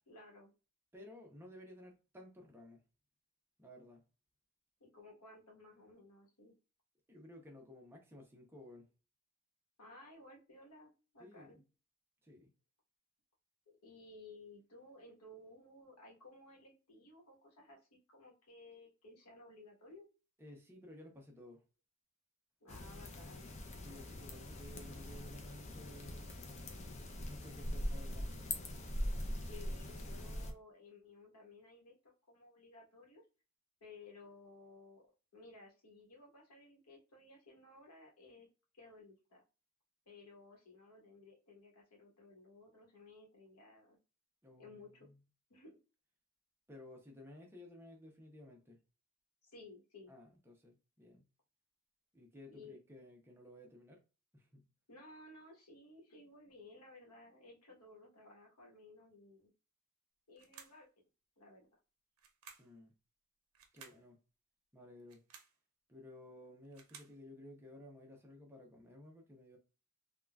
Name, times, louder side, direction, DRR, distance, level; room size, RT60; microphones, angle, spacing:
voice 1, 0.1-0.5 4.8-6.5 9.8-11.6 13.8-20.1 22.6-23.5 29.4-33.2 33.8-35.0 35.3-38.5 38.7-39.4 40.1-44.0 44.6-45.1 45.5-45.8 49.4-50.1 52.5-52.8 54.9-59.5 60.3-60.9 61.4-61.7, left 2 dB, 85° left, 1.1 m, -57 dB
voice 2, 0.9-2.8 3.6-4.0 7.1-8.9 11.2-11.6 12.2-12.5 20.4-21.6 23.8-26.4 27.3-28.3 44.4-45.2 46.7-48.8 50.1-51.2 52.1-54.0 54.3-54.6 62.6-62.9 63.7-64.2 64.7-65.2 65.9-69.6, left 1 dB, 10° right, 0.6 m, -55 dB
sound 1, 22.7-30.5, left 1 dB, 30° left, 0.4 m, -42 dB
sound 2, 60.4-60.9 62.2-62.8 63.5-64.1 65.0-65.6 66.5-67.2, right 6 dB, 70° right, 0.6 m, -57 dB
3.7 x 2.2 x 2.2 m
head